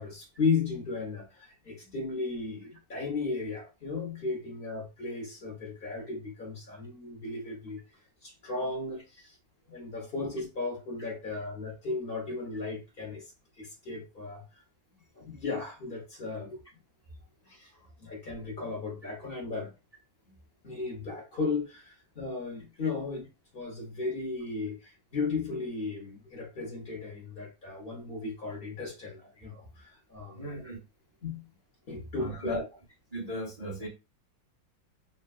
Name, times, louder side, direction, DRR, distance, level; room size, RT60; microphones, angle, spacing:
voice 1, 0.0-7.8 8.2-9.4 9.7-13.3 13.6-14.6 15.1-16.6 17.5-17.7 18.0-19.7 20.6-23.3 23.5-30.4 31.2-31.4 31.9-32.7, left 4 dB, 45° left, 0.8 m, -35 dB
voice 2, 30.2-30.8 32.2-32.6 33.1-33.9, right 1 dB, 90° right, 0.3 m, -37 dB
3.3 x 2.3 x 2.4 m
omnidirectional pair, 2.0 m